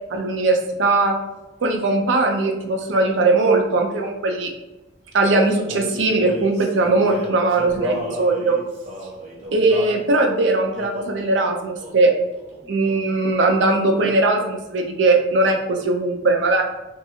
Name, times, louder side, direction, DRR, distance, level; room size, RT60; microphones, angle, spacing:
voice 1, 0.1-1.1 1.6-4.5 5.1-8.6 9.5-12.1 12.7-16.6, right 2 dB, 80° right, 3 dB, 0.5 m, -19 dB
Male singing, 5.6-10.0 10.7-11.2 11.8-12.1 12.3-13.3, equal, 40° right, 0.8 m, -33 dB
2.6 x 2.4 x 2.7 m, 1.0 s
head